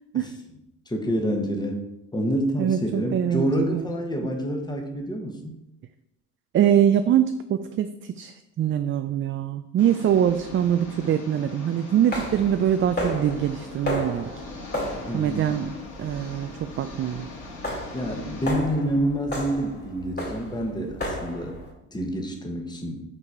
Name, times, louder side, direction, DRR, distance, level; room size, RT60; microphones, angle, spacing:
voice 1, 0.9-1.8 2.1-5.6 15.0-15.7 17.9-21.6 21.9-23.0, equal, 10° left, 2 dB, 1.2 m, -27 dB
voice 2, 2.6-3.9 4.2-4.3 6.5-14.3 15.0-17.3, right 10 dB, 35° right, 9 dB, 0.4 m, -24 dB
Engine, 9.8-18.4, left 3 dB, 55° left, 2.5 m, -41 dB
sound 1, 10.1-11.0 12.1-21.7, equal, 30° left, 2.2 m, -34 dB
5.5 x 4.1 x 4.7 m, 0.84 s
supercardioid pair, 80°, 36 cm